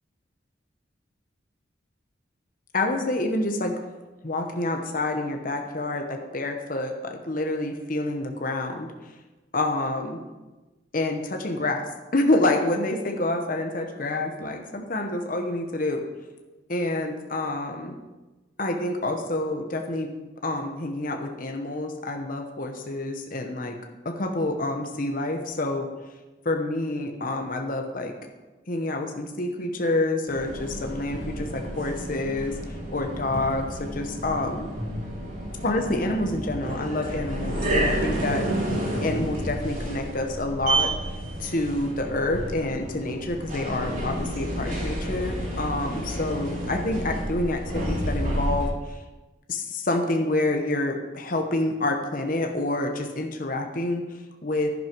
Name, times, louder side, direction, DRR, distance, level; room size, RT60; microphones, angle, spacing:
voice 1, 2.7-3.9 4.2-8.9 9.5-10.2 10.9-11.8 12.1-16.0 16.7-18.0 18.6-20.1 20.4-23.8 24.0-25.9 26.4-28.1 28.7-32.5 32.9-34.7 35.6-38.7 39.0-40.9 41.4-49.0 49.5-54.0 54.4-54.7, left 2 dB, 45° left, 4 dB, 1.1 m, -27 dB
sound 1, 30.3-48.7, right 1 dB, 45° right, 3.7 m, -30 dB
11.0 x 11.0 x 4.6 m, 1.2 s
head